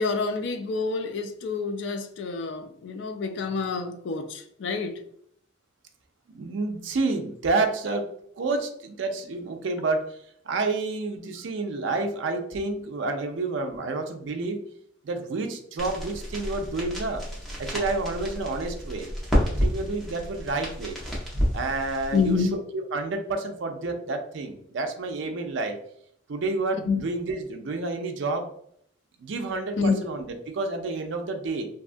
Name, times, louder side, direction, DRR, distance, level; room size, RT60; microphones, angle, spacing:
voice 1, 0.0-5.0 22.1-22.6 26.9-27.0 29.8-30.1, left 4 dB, 55° left, 0.3 m, -27 dB
voice 2, 6.3-8.1 8.4-10.2 10.5-14.6 15.0-17.2 17.6-19.1 19.6-21.0 21.5-25.7 26.3-28.4 29.2-31.7, right 3 dB, 65° right, 0.4 m, -29 dB
sound 1, 15.8-22.3, equal, ahead, 0.6 m, -30 dB
2.6 x 2.3 x 2.5 m
head